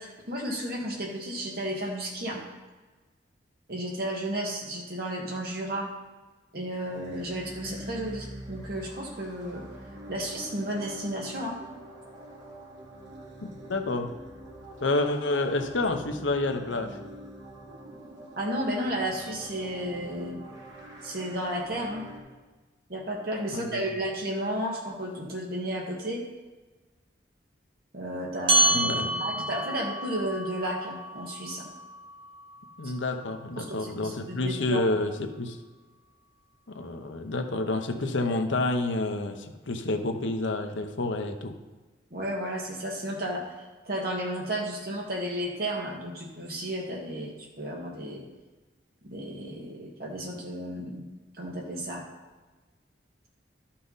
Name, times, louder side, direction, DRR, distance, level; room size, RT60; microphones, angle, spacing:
voice 1, 0.0-2.4 3.7-5.9 6.5-9.6 10.1-11.6 18.4-20.4 21.0-22.1 22.9-26.2 27.9-28.8 29.1-31.7 32.8-32.9 33.6-34.9 42.1-48.2 49.0-51.0 51.4-52.0, right 1 dB, 55° right, -1 dB, 1.7 m, -33 dB
sound 1, 6.8-22.2, equal, 75° right, 2.4 m, -44 dB
voice 2, 13.4-14.1 14.8-17.0 23.5-23.8 28.7-29.2 32.8-35.6 36.7-41.5, left 2 dB, 85° left, 6 dB, 0.8 m, -29 dB
sound 2, 28.5-33.3, right 1 dB, 30° right, 0.9 m, -29 dB
12.5 x 5.7 x 4.0 m, 1.3 s
head